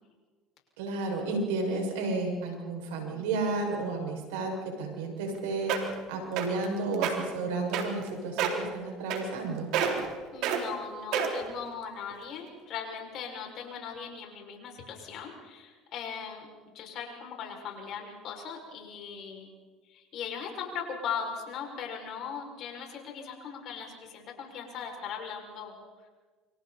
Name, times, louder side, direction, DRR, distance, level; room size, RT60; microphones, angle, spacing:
voice 1, 0.8-5.7 6.1-9.7, right 3 dB, 85° right, 2 dB, 6.3 m, -32 dB
sound 1, 5.3-5.4 5.7-6.0 6.4-6.6 6.9-7.1 7.7-8.1 8.4-8.6 9.1-9.5 9.7-10.1 10.4-10.6 11.1-11.5 12.1-12.2, right 8 dB, 70° right, 3.6 m, -28 dB
voice 2, 10.3-16.5 16.7-19.5 19.8-25.7, left 6 dB, 60° left, 1 dB, 6.4 m, -39 dB
28.5 x 25.5 x 4.3 m, 1.4 s
supercardioid pair, 90°, 0 cm